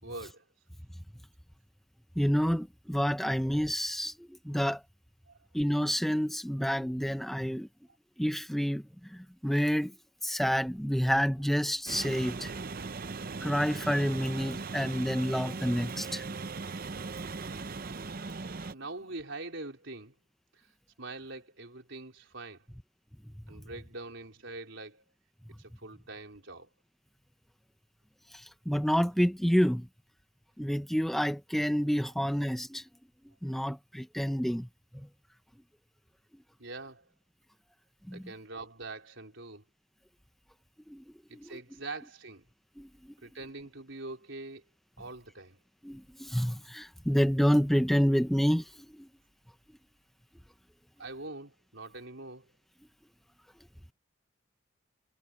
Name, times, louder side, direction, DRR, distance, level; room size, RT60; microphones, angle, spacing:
voice 1, 0.0-0.4 5.3-5.4 18.7-20.1 20.5-20.7 21.0-22.7 23.5-25.0 25.6-26.7 36.6-37.1 38.1-39.6 41.3-42.5 43.2-44.6 45.0-45.6 51.0-52.5, right 2 dB, 65° right, 4.3 m, -43 dB
voice 2, 2.2-4.8 5.5-7.7 8.2-9.9 10.2-12.5 13.4-16.2 28.3-29.9 30.6-32.8 33.4-34.7 34.9-35.1 38.1-38.2 40.9-41.0 41.3-41.5 42.8-43.1 45.8-49.1, equal, ahead, 0.8 m, -29 dB
sound 1, 11.9-18.7, right 4 dB, 45° right, 0.6 m, -39 dB
head